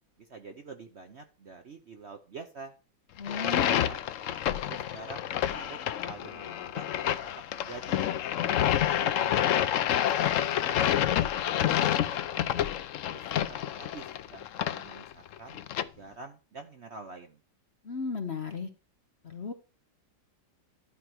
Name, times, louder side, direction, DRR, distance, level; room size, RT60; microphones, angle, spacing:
voice 1, 0.2-2.7 3.5-4.0 4.7-6.8 7.5-8.1 8.7-9.2 9.5-11.3 11.7-12.7 13.1-15.6 16.0-17.4, right 4 dB, 50° right, 6 dB, 0.9 m, -47 dB
sound 1, 3.2-15.8, left 11 dB, 75° left, 0.7 m, -28 dB
voice 2, 3.2-3.9 17.8-18.7 19.2-19.5, left 4 dB, 45° left, 6 dB, 1.0 m, -35 dB
11.5 x 4.6 x 6.2 m, 0.33 s
omnidirectional pair, 2.0 m